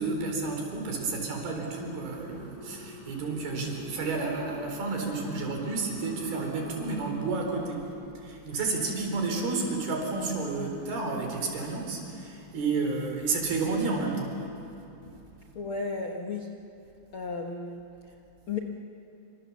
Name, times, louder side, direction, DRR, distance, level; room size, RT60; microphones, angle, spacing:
voice 1, 0.0-7.8 8.2-14.3 15.0-15.2, right 3 dB, 75° right, 2 dB, 6.0 m, -31 dB
sound 1, 0.6-7.1, right 1 dB, 30° right, 5.4 m, -45 dB
voice 2, 15.5-16.5 17.1-17.8 18.5-18.6, left 4 dB, 80° left, 1 dB, 1.2 m, -33 dB
28.0 x 26.5 x 7.3 m, 2.9 s
omnidirectional pair, 4.5 m